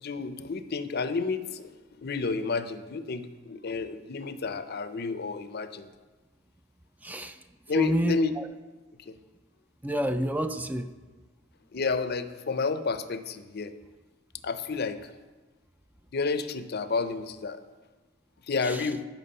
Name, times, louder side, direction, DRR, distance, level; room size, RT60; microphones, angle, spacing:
voice 1, 0.0-1.7 2.0-5.9 7.7-8.4 9.1-9.2 11.7-13.7 14.4-15.1 16.1-17.6 18.5-19.1, left 4 dB, 55° left, 11 dB, 0.6 m, -30 dB
voice 2, 7.0-7.4 7.7-8.5 9.8-10.9 18.6-18.9, right 1 dB, 10° right, 9 dB, 0.4 m, -29 dB
14.0 x 6.0 x 5.5 m, 1.3 s
head